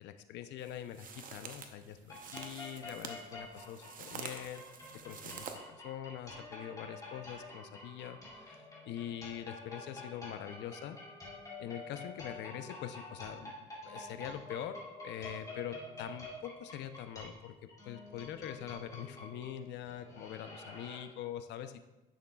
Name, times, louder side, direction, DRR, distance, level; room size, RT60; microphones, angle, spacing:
voice 1, 0.0-4.6 5.0-11.0 11.6-17.5 17.9-21.8, left 10 dB, 65° left, 10 dB, 0.6 m, -44 dB
sound 1, 0.6-5.6, right 6 dB, 45° right, 0.8 m, -47 dB
sound 2, 2.0-21.0, left 2 dB, 15° left, 2.4 m, -48 dB
10.0 x 6.5 x 2.3 m, 1.1 s
cardioid pair, 110°, 20 cm